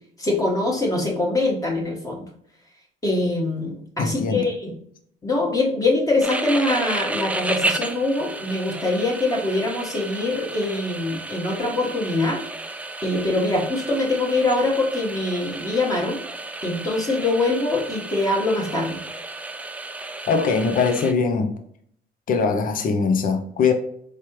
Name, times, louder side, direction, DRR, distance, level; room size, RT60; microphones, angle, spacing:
voice 1, 0.2-2.2 3.0-4.7 5.2-12.4 13.0-16.2 16.6-19.0, left 2 dB, 20° left, -2 dB, 1.4 m, -23 dB
voice 2, 4.0-4.4 20.3-21.5 22.3-23.7, left 5 dB, 50° left, 6 dB, 0.7 m, -21 dB
sound 1, 6.2-21.1, right 2 dB, 10° right, 0.4 m, -32 dB
4.6 x 3.3 x 3.1 m, 0.64 s
cardioid pair, 115°, 18 cm